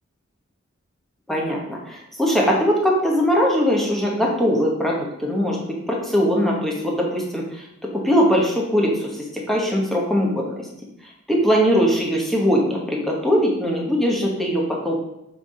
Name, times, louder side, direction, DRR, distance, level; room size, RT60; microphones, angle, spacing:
voice 1, 1.3-7.6 7.9-10.7 11.3-14.9, equal, ahead, -2 dB, 1.5 m, -21 dB
7.9 x 3.9 x 5.0 m, 0.86 s
head